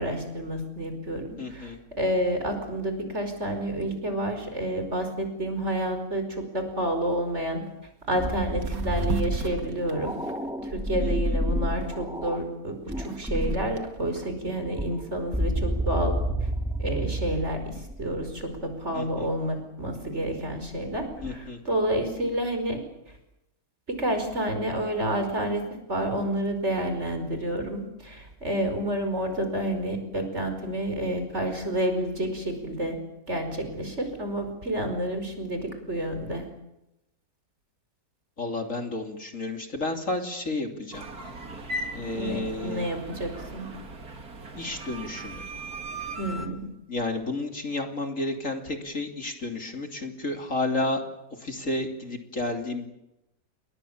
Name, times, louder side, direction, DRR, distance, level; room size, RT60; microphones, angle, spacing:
voice 1, 0.0-7.6 8.1-10.2 10.6-16.5 16.8-22.8 23.9-33.0 33.3-36.5 42.1-43.7 46.2-46.7, right 1 dB, 40° right, 6 dB, 5.4 m, -29 dB
voice 2, 1.4-1.8 11.0-11.4 18.9-19.3 21.2-21.6 38.4-41.1 41.9-42.9 44.5-45.4 46.9-51.0 51.4-52.9, left 2 dB, 45° left, 4 dB, 3.4 m, -31 dB
sound 1, 7.6-7.7 8.1-8.3 8.6-11.3 11.8-14.3, right 5 dB, 80° right, 2.7 m, -37 dB
sound 2, 8.2-12.4 12.9-13.8 14.5-18.6 20.9-21.4, equal, 5° right, 1.8 m, -30 dB
sound 3, 40.9-46.5, right 1 dB, 60° right, 3.1 m, -38 dB
29.5 x 23.5 x 7.3 m, 0.89 s
omnidirectional pair, 1.8 m